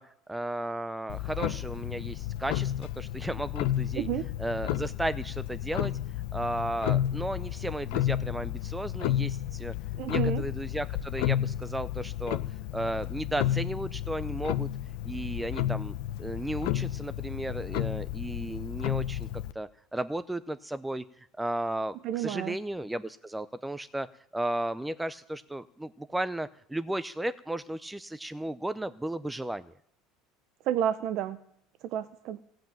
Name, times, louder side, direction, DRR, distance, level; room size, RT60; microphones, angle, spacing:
voice 1, 0.0-4.1 4.4-5.9 6.3-9.7 10.1-12.4 12.7-14.7 15.0-15.9 16.2-19.3 19.5-24.1 24.3-29.7, right 1 dB, 10° right, 14 dB, 0.6 m, -34 dB
Clock, 1.1-19.5, left 12 dB, 75° left, 0.7 m, -32 dB
voice 2, 10.0-10.4 22.0-22.6 30.7-31.4 31.9-32.4, right 11 dB, 60° right, 13 dB, 0.7 m, -30 dB
16.0 x 7.8 x 9.2 m, 0.71 s
supercardioid pair, 95°, 0 cm